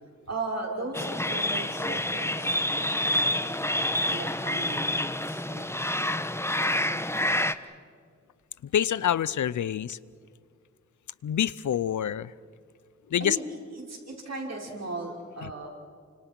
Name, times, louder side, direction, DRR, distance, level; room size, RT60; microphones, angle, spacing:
voice 1, 0.3-3.5 4.1-5.6 13.2-15.7, right 2 dB, 60° right, -1 dB, 5.8 m, -37 dB
sound 1, 0.9-7.5, left 1 dB, 10° left, 1.1 m, -28 dB
voice 2, 8.6-10.0 11.2-12.3 13.1-13.4 15.4-15.5, left 10 dB, 85° left, 19 dB, 0.6 m, -27 dB
29.0 x 25.5 x 6.1 m, 2.1 s
cardioid pair, 60°, 29 cm